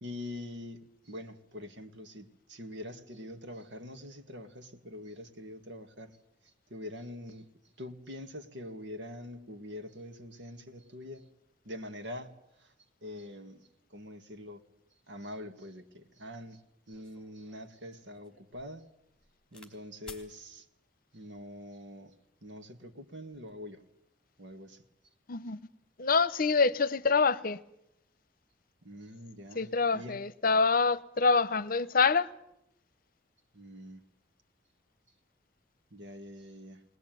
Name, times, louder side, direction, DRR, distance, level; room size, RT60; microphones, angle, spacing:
voice 1, 0.0-6.2 6.7-7.5 7.8-11.3 11.6-12.7 13.0-14.6 15.1-16.6 16.9-18.9 19.5-20.7 21.1-22.2 22.4-23.8 24.4-24.8 28.8-30.2 33.5-34.0 35.9-36.8, left 1 dB, 80° right, 2.0 m, -44 dB
sound 1, 16.9-19.7 20.0-20.3 21.2-21.5, left 3 dB, 5° left, 3.6 m, -54 dB
voice 2, 25.3-25.6 26.0-27.6 29.5-32.3, left 4 dB, 50° left, 0.8 m, -26 dB
21.0 x 20.5 x 9.2 m
head